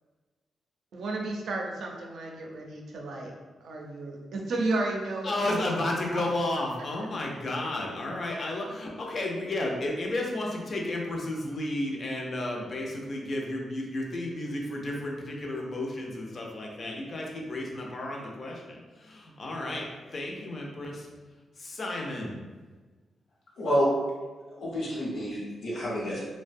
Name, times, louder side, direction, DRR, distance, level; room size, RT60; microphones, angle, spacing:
voice 1, 0.9-3.3 3.6-6.2 6.5-6.6 7.0-7.1 8.0-8.2, right 2 dB, 70° right, 0 dB, 0.4 m, -33 dB
voice 2, 5.2-19.9 20.1-21.1 21.6-22.4, left 1 dB, 40° left, -1 dB, 0.4 m, -32 dB
voice 3, 23.6-23.9 24.5-26.2, equal, 75° left, -6 dB, 1.0 m, -28 dB
2.6 x 2.1 x 2.5 m, 1.3 s
wide cardioid pair, 130°, 0 cm